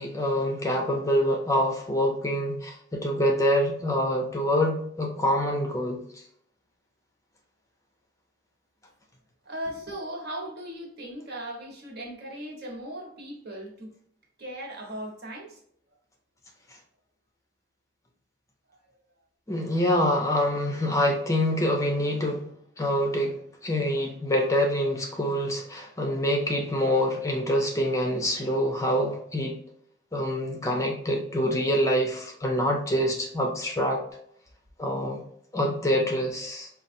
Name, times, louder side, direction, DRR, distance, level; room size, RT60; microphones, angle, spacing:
voice 1, 0.0-6.0 19.5-22.4 22.8-29.6 30.1-34.0 34.8-35.2 35.5-36.7, equal, 15° left, 2 dB, 0.5 m, -26 dB
voice 2, 9.4-13.9 14.4-15.6, right 1 dB, 55° right, 0 dB, 1.2 m, -38 dB
5.3 x 2.4 x 2.6 m, 0.67 s
head